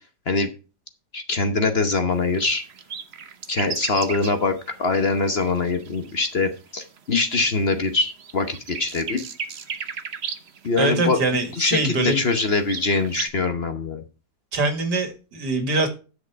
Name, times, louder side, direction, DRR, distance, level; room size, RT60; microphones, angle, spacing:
voice 1, 1.1-2.6 3.5-9.2 10.6-14.0, left 3 dB, 45° left, 8 dB, 1.1 m, -23 dB
sound 1, 2.1-7.2 7.6-13.3, right 6 dB, 45° right, 1.0 m, -36 dB
voice 2, 10.8-12.2 14.5-15.9, right 2 dB, 80° right, 7 dB, 2.5 m, -23 dB
10.5 x 6.6 x 4.6 m, 0.33 s
omnidirectional pair, 1.8 m